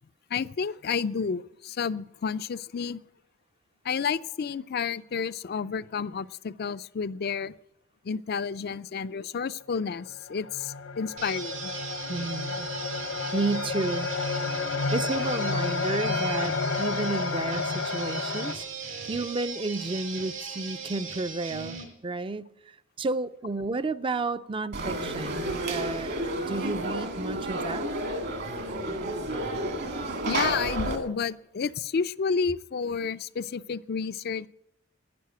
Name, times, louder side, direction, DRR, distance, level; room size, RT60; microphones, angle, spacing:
voice 1, 0.3-3.0 3.8-7.5 8.0-11.7 16.3-16.4 30.2-34.5, left 6 dB, 55° left, 0.4 m, -30 dB
sound 1, 9.6-9.7 10.1-18.6, left 4 dB, 75° left, 0.9 m, -31 dB
sound 2, 11.2-21.8, right 5 dB, 85° right, 5.3 m, -38 dB
voice 2, 12.1-14.1 14.9-18.7 19.0-27.9, right 3 dB, 25° right, 0.5 m, -32 dB
Conversation / Crowd, 24.7-31.0, right 1 dB, 55° right, 2.1 m, -31 dB
11.5 x 9.6 x 9.3 m
head